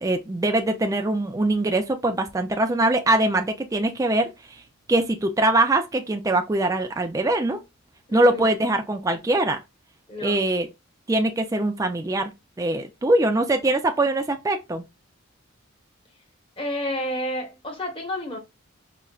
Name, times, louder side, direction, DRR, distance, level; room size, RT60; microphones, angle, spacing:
voice 1, 0.0-4.3 4.9-7.6 8.1-9.6 10.2-10.7 11.1-12.3 12.6-14.8, right 2 dB, 15° right, 0.3 m, -22 dB
voice 2, 8.1-8.5 10.1-10.4 16.6-18.4, left 1 dB, 25° left, 1.0 m, -30 dB
4.8 x 2.1 x 2.3 m
head